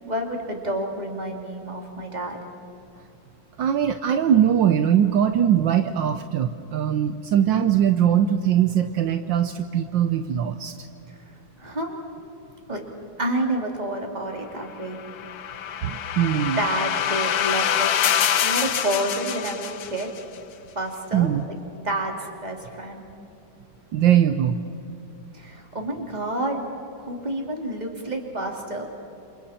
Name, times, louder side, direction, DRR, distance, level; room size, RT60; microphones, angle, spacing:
voice 1, 0.1-2.4 11.1-11.2 11.6-12.0 12.7-12.8 13.2-15.0 16.6-18.0 18.4-20.1 20.7-21.3 21.7-23.1 25.3-26.6 27.0-28.9, right 1 dB, 20° right, 1 dB, 2.8 m, -29 dB
voice 2, 3.6-10.7 15.8-16.6 21.1-21.4 23.9-24.6, right 9 dB, 75° right, 8 dB, 1.4 m, -21 dB
sound 1, 14.9-20.2, left 9 dB, 60° left, 1.2 m, -25 dB
29.5 x 27.5 x 4.3 m, 2.8 s
omnidirectional pair, 2.1 m